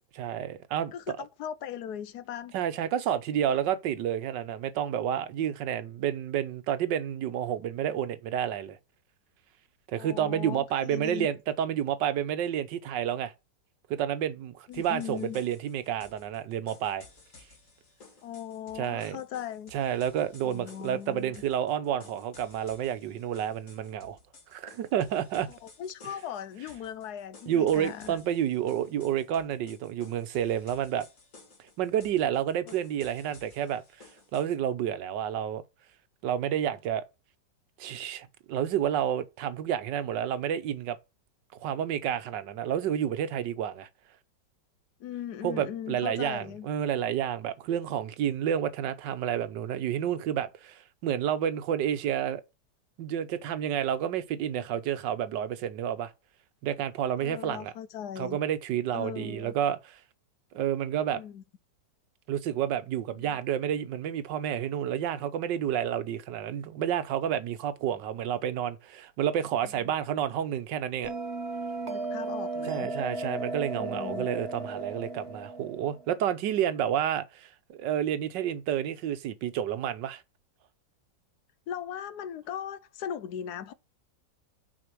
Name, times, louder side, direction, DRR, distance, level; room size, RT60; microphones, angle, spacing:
voice 1, 0.2-0.9 2.5-8.8 9.9-13.3 13.9-17.0 18.8-19.2 19.7-24.2 24.5-25.5 27.5-31.1 31.8-33.8 34.3-35.6 36.2-37.0 37.8-41.0 41.6-43.9 45.4-52.4 53.0-56.1 56.6-57.7 58.2-60.0 60.5-61.2 62.3-71.1 72.7-80.2, right 10 dB, 90° right, 1.5 m, -30 dB
voice 2, 0.9-2.5 10.0-11.3 14.7-15.4 18.2-19.7 20.4-21.4 25.5-28.2 32.7-32.8 45.0-46.7 57.2-58.4 58.9-59.5 61.1-61.4 63.1-63.3 69.6-69.7 71.9-72.9 73.8-74.3 81.7-83.7, left 9 dB, 70° left, 1.1 m, -39 dB
sound 1, 14.7-34.6, left 3 dB, 50° left, 2.3 m, -55 dB
Bell, 71.0-76.1, right 2 dB, 40° right, 1.4 m, -35 dB
6.2 x 5.2 x 6.1 m
omnidirectional pair, 1.9 m